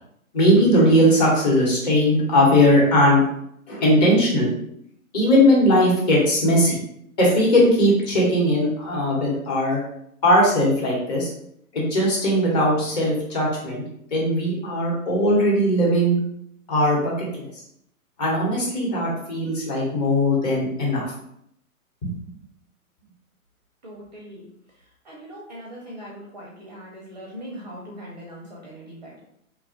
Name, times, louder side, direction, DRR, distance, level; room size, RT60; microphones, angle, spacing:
voice 1, 0.3-3.2 3.7-4.5 5.1-6.8 7.2-9.8 10.2-11.3 11.7-13.8 14.1-16.2 16.7-17.6 18.2-21.1 22.0-22.1, equal, 30° left, -4 dB, 1.0 m, -19 dB
voice 2, 23.8-24.5 24.7-29.2, equal, 30° right, -3 dB, 0.5 m, -40 dB
2.9 x 2.2 x 2.8 m, 0.73 s
figure-of-eight pair, 125°, 43 cm